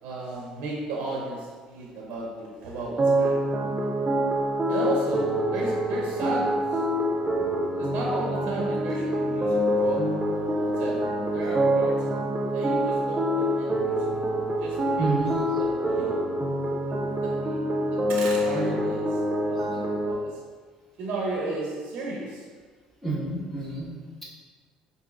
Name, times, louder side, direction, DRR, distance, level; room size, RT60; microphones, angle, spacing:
voice 1, 0.0-3.4 4.7-6.8 7.8-10.2 10.6-12.1 12.5-14.3 14.6-15.1 15.6-16.3 16.9-19.8 20.1-20.4 21.0-22.5, right 2 dB, 75° right, -2 dB, 0.6 m, -34 dB
sound 1, 3.0-20.1, right 1 dB, 30° right, 0.4 m, -26 dB
voice 2, 15.0-15.6 19.6-19.8 23.0-23.9, right 3 dB, 10° left, -8 dB, 1.4 m, -30 dB
4.8 x 2.6 x 2.4 m, 1.5 s
supercardioid pair, 90°, 2 cm